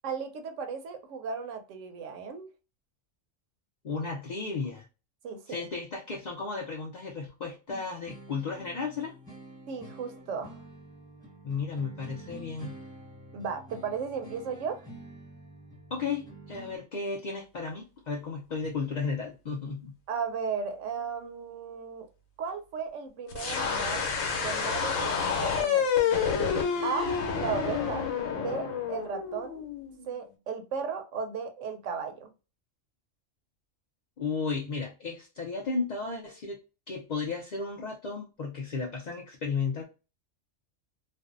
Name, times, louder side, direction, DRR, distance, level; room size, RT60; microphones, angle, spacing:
voice 1, 0.0-2.5 5.2-5.7 9.7-10.6 13.3-14.9 20.1-22.1 22.4-26.1 26.8-28.1 28.3-29.6 30.0-32.3, right 6 dB, 75° right, 0.9 m, -35 dB
voice 2, 3.8-4.9 5.5-9.1 11.4-12.8 15.9-20.0 34.2-36.6 36.9-39.8, left 4 dB, 60° left, 0.4 m, -34 dB
sound 1, 7.7-16.8, right 1 dB, 5° left, 1.0 m, -48 dB
sound 2, 23.3-30.1, left 6 dB, 90° left, 1.1 m, -29 dB
2.5 x 2.2 x 2.4 m
omnidirectional pair, 1.3 m